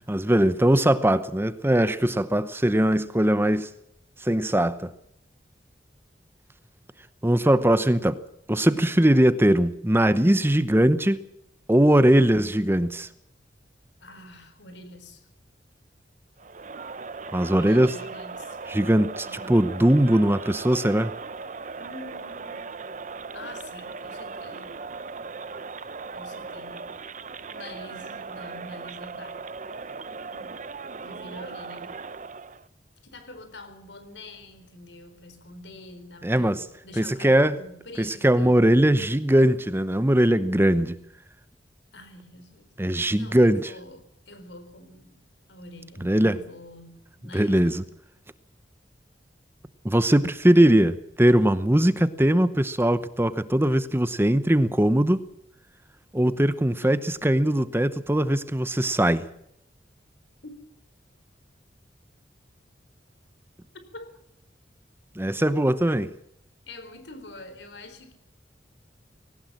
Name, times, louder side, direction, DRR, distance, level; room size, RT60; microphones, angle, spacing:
voice 1, 0.0-3.7 4.2-4.9 7.2-8.2 8.5-11.2 11.7-13.1 17.3-18.0 18.7-21.1 36.2-36.6 37.0-37.6 38.0-41.0 42.8-43.7 46.0-46.4 47.3-47.8 49.8-55.2 56.1-57.0 57.2-59.3 65.2-66.1, right 1 dB, 15° right, 14 dB, 0.8 m, -20 dB
voice 2, 14.0-15.3 17.5-18.8 19.2-19.6 21.8-22.8 23.3-24.8 26.1-26.9 27.5-29.5 30.1-30.6 31.0-32.0 33.0-38.6 41.9-45.2 45.5-47.9 56.8-57.1 60.4-60.5 63.9-64.1 66.7-68.1, left 1 dB, 80° left, 10 dB, 4.3 m, -45 dB
Crowd, 16.4-32.7, right 4 dB, 45° right, 0.8 m, -38 dB
20.0 x 18.0 x 7.5 m, 0.75 s
head